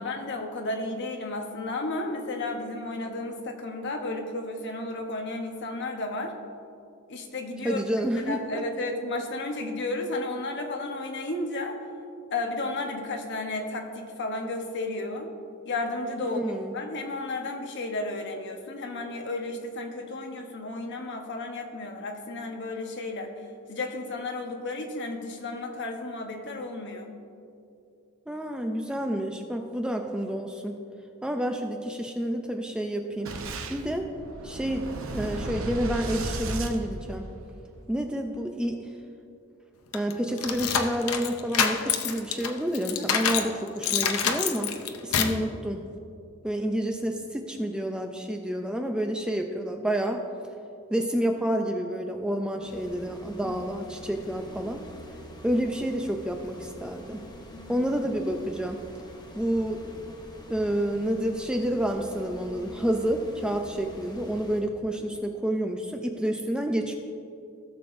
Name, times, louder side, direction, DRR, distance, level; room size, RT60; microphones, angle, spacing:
voice 1, 0.0-6.3 7.1-11.8 12.3-15.3 15.6-16.4 16.7-27.1 42.9-43.5 45.1-45.4 53.4-53.6 53.8-53.9 57.5-57.9, left 2 dB, 55° left, 3 dB, 1.0 m, -33 dB
voice 2, 7.6-8.6 16.2-16.7 28.3-30.8 31.2-33.4 33.7-34.1 34.4-37.3 37.9-38.9 39.9-44.7 45.0-45.9 46.4-50.2 50.9-54.8 55.4-57.2 57.7-58.8 59.3-60.0 60.5-66.9, right 1 dB, 5° right, 4 dB, 0.4 m, -29 dB
Boom, 33.2-37.6, right 2 dB, 65° right, 0.8 m, -34 dB
sound 1, 39.9-43.5 43.8-45.4, left 7 dB, 80° left, 0.6 m, -27 dB
sound 2, 52.6-64.6, equal, 20° left, 0.9 m, -46 dB
17.0 x 6.7 x 2.6 m, 2.6 s
head